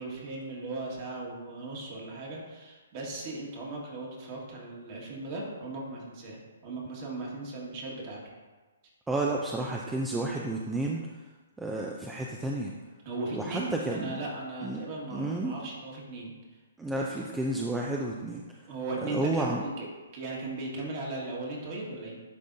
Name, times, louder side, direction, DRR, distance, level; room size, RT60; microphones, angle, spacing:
voice 1, 0.0-8.2 13.1-16.3 18.7-19.9 20.1-22.2, right 2 dB, 40° right, -3 dB, 1.8 m, -37 dB
voice 2, 9.1-11.1 11.6-12.7 13.3-14.2 14.6-14.8 15.1-15.5 16.8-18.4 19.1-19.6, right 2 dB, 10° right, -2 dB, 0.5 m, -31 dB
10.5 x 3.6 x 2.7 m, 1.3 s
hypercardioid pair, 135°, 0 cm